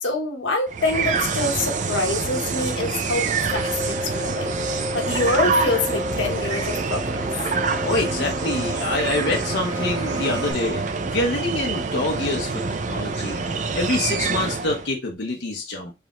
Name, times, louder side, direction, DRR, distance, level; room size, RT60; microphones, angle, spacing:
voice 1, 0.0-4.5 4.9-7.3, left 2 dB, 85° left, 1.1 m, -26 dB
sound 1, 0.7-14.9, right 4 dB, 40° right, 0.5 m, -26 dB
sound 2, 3.5-10.5, left 1 dB, 25° right, 1.5 m, -33 dB
voice 2, 7.8-15.9, left 2 dB, 65° left, 0.9 m, -26 dB
4.8 x 3.5 x 3.0 m
head